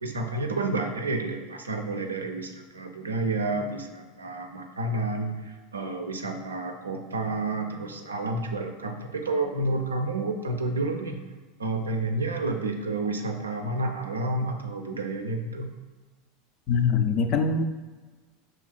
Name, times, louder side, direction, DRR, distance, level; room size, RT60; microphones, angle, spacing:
voice 1, 0.0-11.2 11.6-15.7, right 2 dB, 85° right, 4 dB, 0.4 m, -30 dB
voice 2, 16.7-17.6, left 5 dB, 45° left, 7 dB, 0.4 m, -23 dB
5.2 x 3.2 x 2.3 m, 1.3 s
figure-of-eight pair, 80°, 0 cm